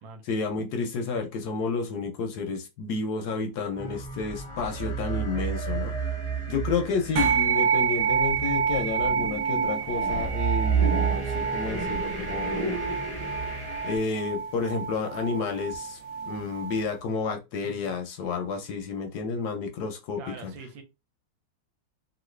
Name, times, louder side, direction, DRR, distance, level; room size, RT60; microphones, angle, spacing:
voice 1, 0.2-6.0 6.5-12.8 13.8-16.0 16.3-20.5, left 4 dB, 70° left, 1.0 m, -31 dB
sound 1, 3.8-14.0, right 5 dB, 20° right, 0.9 m, -31 dB
sound 2, 7.2-16.8, right 7 dB, 70° right, 0.8 m, -28 dB
voice 2, 20.2-20.8, right 4 dB, 90° right, 1.5 m, -42 dB
3.1 x 2.6 x 3.1 m
omnidirectional pair, 2.0 m